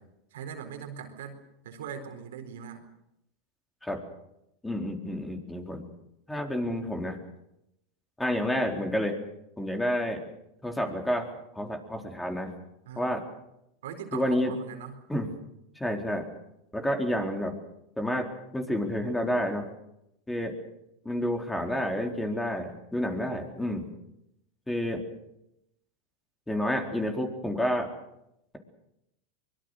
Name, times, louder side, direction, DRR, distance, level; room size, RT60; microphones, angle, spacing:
voice 1, 0.3-2.8 12.9-13.2 13.8-15.0, right 7 dB, 85° right, 4 dB, 4.3 m, -41 dB
voice 2, 4.6-5.8 6.3-7.2 8.2-9.2 9.6-10.2 10.6-11.3 11.5-12.5 13.0-13.2 14.1-14.5 15.1-15.3 15.8-16.3 16.7-17.5 18.0-18.3 18.5-19.7 20.3-20.5 21.0-23.8 24.7-25.0 26.5-27.9, equal, 5° left, 3 dB, 3.9 m, -29 dB
24.0 x 22.5 x 6.5 m, 0.82 s
supercardioid pair, 120°, 0 cm